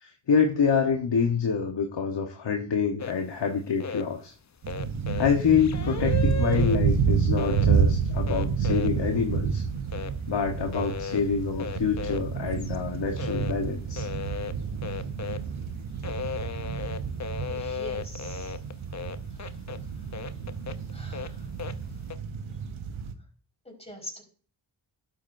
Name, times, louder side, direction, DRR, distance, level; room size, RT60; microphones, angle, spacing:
voice 1, 0.0-4.3 5.2-9.6 10.3-14.1, left 6 dB, 60° left, 3 dB, 1.2 m, -26 dB
sound 1, 3.0-3.1 3.6-4.0 4.7-6.8 7.4-7.7 8.1-9.5 9.8-10.2 10.7-11.2 11.6-12.8 13.2-13.5 13.8-15.5 15.8-19.8 20.1-21.7 22.1-22.2, left 5 dB, 35° left, 0.7 m, -35 dB
sound 2, 4.6-23.1, right 6 dB, 80° right, 1.0 m, -29 dB
voice 2, 17.5-18.6 20.9-21.4 23.6-24.2, equal, 10° left, -1 dB, 4.6 m, -43 dB
11.5 x 7.9 x 2.6 m, 0.41 s
cardioid pair, 55°, 48 cm